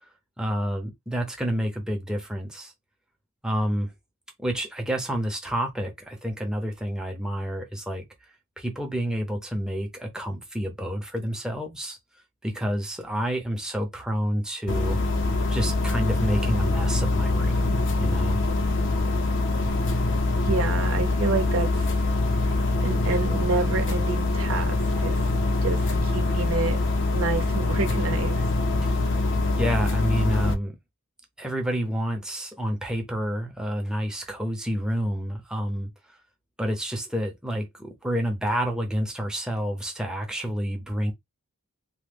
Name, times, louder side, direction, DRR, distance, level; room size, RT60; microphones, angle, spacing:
voice 1, 0.4-2.7 3.4-3.9 4.4-8.1 8.6-12.0 12.4-15.0 15.5-18.4 28.8-29.2 29.6-30.8 31.4-35.9 36.6-41.1, equal, 5° right, 0.7 m, -29 dB
sound 1, 14.7-30.5, left 2 dB, 60° left, 0.6 m, -24 dB
voice 2, 20.4-22.0 22.4-25.3 25.6-26.8 27.1-28.4, right 4 dB, 65° right, 0.8 m, -29 dB
3.0 x 2.1 x 3.4 m
head